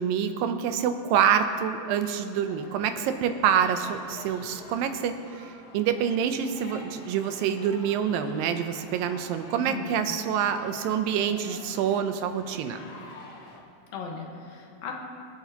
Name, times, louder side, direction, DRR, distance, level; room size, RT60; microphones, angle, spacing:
voice 1, 0.0-12.8, right 8 dB, 90° right, 8 dB, 2.5 m, -26 dB
sound 1, 2.4-13.6, left 2 dB, 55° left, 2.1 m, -48 dB
voice 2, 9.6-10.1 13.9-14.9, left 4 dB, 85° left, 0 dB, 3.1 m, -37 dB
27.5 x 9.2 x 2.9 m, 2.5 s
omnidirectional pair, 4.0 m